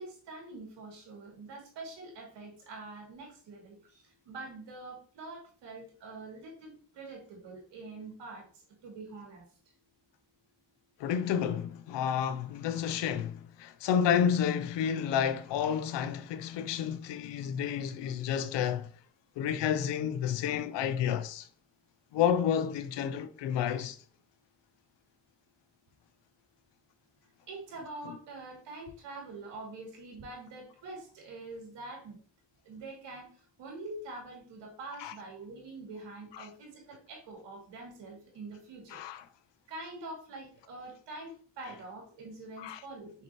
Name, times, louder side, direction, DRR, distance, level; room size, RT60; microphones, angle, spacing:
voice 1, 0.0-8.5 8.8-9.4 27.5-32.2 32.7-33.3 33.6-39.0 39.7-43.1, right 2 dB, 85° right, 2.7 m, -45 dB
voice 2, 11.0-18.9 19.4-21.5 22.1-24.0 35.0-35.1 36.4-36.5 38.9-39.2 42.6-42.8, left 8 dB, 85° left, 0.7 m, -30 dB
6.1 x 5.8 x 3.0 m
supercardioid pair, 50°, 41 cm